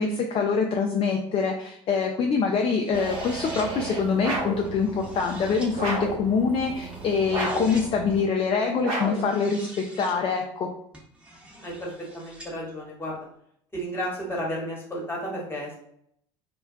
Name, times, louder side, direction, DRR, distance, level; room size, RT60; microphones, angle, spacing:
voice 1, 0.0-10.7, left 5 dB, 35° left, 2 dB, 0.4 m, -25 dB
sound 1, 2.7-3.7 4.6-5.7 6.9-7.9 9.0-10.2 10.9-12.5, right 1 dB, 5° right, 0.7 m, -45 dB
sound 2, 2.9-8.2, right 4 dB, 30° right, 1.1 m, -38 dB
sound 3, 4.2-4.7 5.8-6.2 7.3-7.8 8.8-9.3, right 1 dB, 60° right, 0.9 m, -29 dB
voice 2, 11.6-13.3 13.7-15.7, equal, 15° left, -3 dB, 1.1 m, -33 dB
2.2 x 2.2 x 2.5 m, 0.69 s
hypercardioid pair, 75°, 15 cm